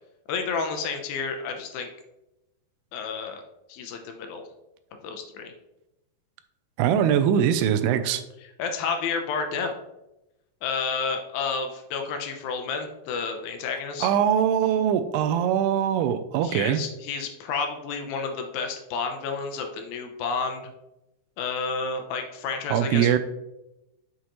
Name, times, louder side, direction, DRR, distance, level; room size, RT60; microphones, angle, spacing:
voice 1, 0.3-1.9 2.9-3.4 3.7-4.4 5.0-5.5 8.4-9.7 10.6-14.1 16.4-20.7 21.4-23.2, left 5 dB, 75° left, 5 dB, 2.4 m, -30 dB
voice 2, 6.8-8.2 14.0-16.8 22.7-23.2, right 9 dB, 90° right, 10 dB, 2.6 m, -22 dB
7.8 x 5.5 x 3.0 m, 0.92 s
omnidirectional pair, 4.5 m